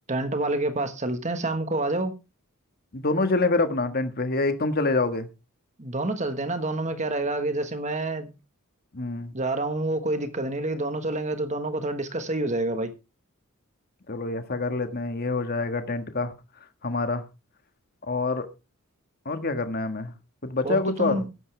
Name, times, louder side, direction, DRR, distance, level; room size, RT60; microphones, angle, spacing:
voice 1, 0.1-2.1 5.8-8.3 9.3-12.9 20.6-21.3, right 2 dB, 30° right, 1.4 m, -28 dB
voice 2, 2.9-5.3 8.9-9.3 14.1-16.3 16.8-17.2 18.1-18.5 19.2-20.1 20.4-21.2, left 3 dB, 45° left, 1.6 m, -26 dB
14.5 x 11.0 x 3.4 m
head